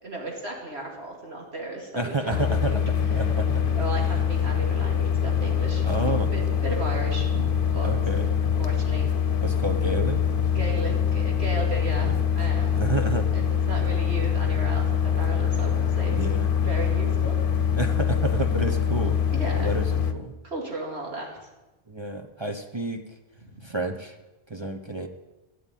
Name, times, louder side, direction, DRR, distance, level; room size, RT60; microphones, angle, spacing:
voice 1, 0.0-2.8 3.8-5.9 6.3-7.9 8.6-9.1 10.5-12.8 13.3-16.1 16.5-17.4 19.3-19.8 20.4-21.4 23.4-23.6, right 2 dB, 85° right, 0 dB, 2.8 m, -35 dB
voice 2, 1.9-3.7 5.9-6.3 7.8-8.4 9.4-10.2 12.0-12.2 12.7-13.3 16.1-16.5 17.8-19.2 19.5-20.3 21.9-23.0 23.6-24.2 24.5-25.1, right 2 dB, 30° right, 6 dB, 0.9 m, -30 dB
sound 1, 2.3-20.1, left 8 dB, 60° left, 1.0 m, -24 dB
13.5 x 8.5 x 9.2 m, 1.1 s
omnidirectional pair, 1.1 m